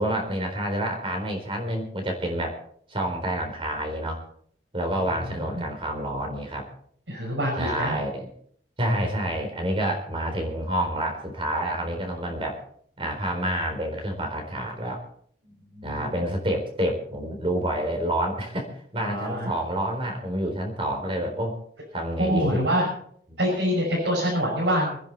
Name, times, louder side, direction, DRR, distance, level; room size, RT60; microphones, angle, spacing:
voice 1, 0.0-2.6 2.9-4.2 4.7-6.7 7.6-8.3 8.8-12.6 13.0-15.0 15.8-21.6 21.9-22.6 23.3-23.4, right 1 dB, 30° right, 2 dB, 4.1 m, -28 dB
voice 2, 5.2-5.6 7.1-8.0 15.7-16.1 19.0-19.5 22.2-22.9 23.4-25.0, equal, 85° right, -4 dB, 6.2 m, -25 dB
26.0 x 10.0 x 4.2 m, 0.63 s
head